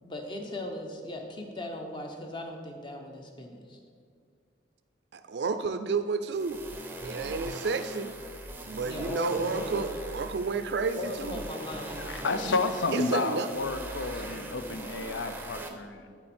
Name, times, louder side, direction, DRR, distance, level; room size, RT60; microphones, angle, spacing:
voice 1, 0.0-3.8 8.8-9.8 11.0-12.0 12.4-12.6 14.1-14.6, left 1 dB, 25° left, 3 dB, 0.8 m, -38 dB
voice 2, 5.1-6.6 7.0-8.2 8.6-11.4 12.9-13.5, right 4 dB, 70° right, 10 dB, 0.4 m, -31 dB
sound 1, 6.3-15.7, right 1 dB, 10° right, 0.6 m, -40 dB
voice 3, 12.0-16.2, left 3 dB, 85° left, 9 dB, 0.6 m, -31 dB
13.0 x 4.5 x 4.3 m, 2.2 s
head